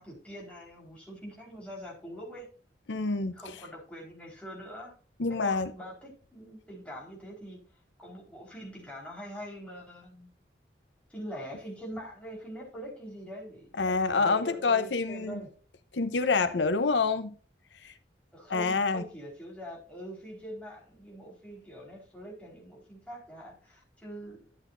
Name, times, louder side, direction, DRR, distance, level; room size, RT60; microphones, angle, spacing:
voice 1, 0.0-2.5 3.3-4.9 5.3-7.6 8.0-10.3 11.1-15.5 18.3-24.5, equal, 5° left, 4.3 m, -43 dB
voice 2, 2.9-3.4 5.2-5.7 13.8-15.4 15.9-17.3 17.8-17.9 18.5-19.0, left 4 dB, 85° left, 0.8 m, -27 dB
12.0 x 8.4 x 2.6 m
head